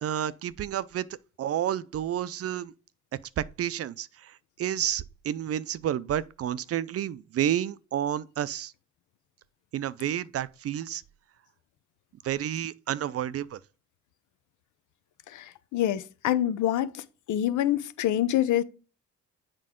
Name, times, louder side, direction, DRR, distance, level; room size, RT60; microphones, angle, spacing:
voice 1, 0.0-1.1 1.4-2.7 3.4-4.3 4.6-8.7 9.7-11.0 12.2-13.6, right 11 dB, 50° right, 0.5 m, -30 dB
voice 2, 15.3-17.0 17.3-18.6, left 12 dB, 80° left, 0.7 m, -26 dB
7.6 x 4.7 x 3.7 m
cardioid pair, 90°, 30 cm